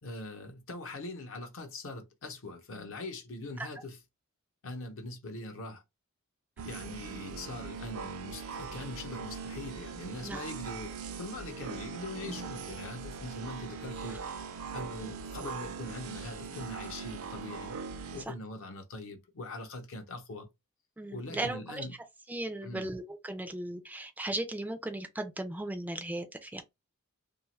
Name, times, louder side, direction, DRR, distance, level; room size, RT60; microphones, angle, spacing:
voice 1, 0.0-4.0 4.6-5.8 6.6-14.2 14.7-17.8 18.1-20.5 21.1-21.9 22.6-22.9, left 2 dB, 65° left, 0.7 m, -42 dB
sound 1, 6.6-18.2, right 5 dB, 80° right, 0.5 m, -41 dB
voice 2, 21.0-21.9 22.3-26.6, right 1 dB, 10° right, 0.3 m, -37 dB
2.8 x 2.3 x 3.1 m
head